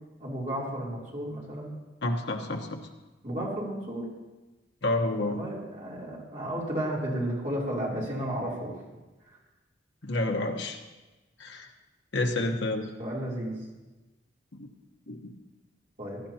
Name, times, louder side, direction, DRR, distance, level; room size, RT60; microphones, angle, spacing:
voice 1, 0.2-1.8 3.2-4.1 5.3-8.8 13.0-13.6 16.0-16.2, right 1 dB, 40° right, -5 dB, 3.2 m, -33 dB
voice 2, 2.0-2.8 4.8-5.4 10.0-10.8 11.4-11.7 12.1-12.9 14.6-14.7 15.1-15.3, left 2 dB, 70° left, 3 dB, 1.1 m, -29 dB
17.5 x 11.5 x 2.9 m, 1.1 s
head